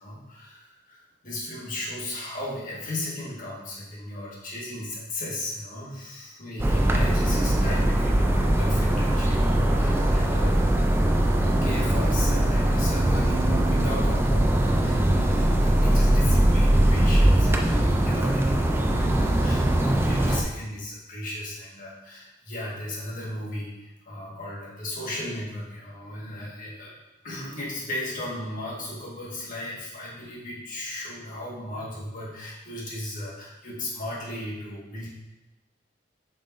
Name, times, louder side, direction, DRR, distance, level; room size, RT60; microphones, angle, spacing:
voice 1, 0.0-11.0 11.4-26.9 27.2-35.1, left 1 dB, 50° left, -5 dB, 1.8 m, -36 dB
sound 1, 6.6-20.4, right 1 dB, 15° right, 0.5 m, -21 dB
7.7 x 5.5 x 2.7 m, 1.0 s
head